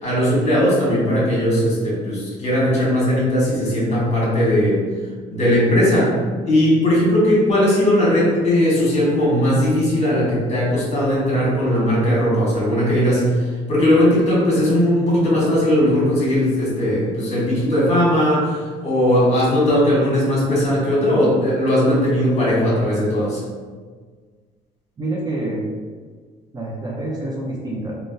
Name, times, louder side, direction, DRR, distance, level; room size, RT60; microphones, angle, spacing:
voice 1, 0.0-4.8 5.3-6.2 6.4-23.4, equal, 40° left, -6 dB, 1.4 m, -18 dB
voice 2, 25.0-25.7 26.5-28.0, right 2 dB, 25° right, -3 dB, 0.5 m, -27 dB
3.5 x 2.1 x 2.6 m, 1.5 s
cardioid pair, 110°, 17 cm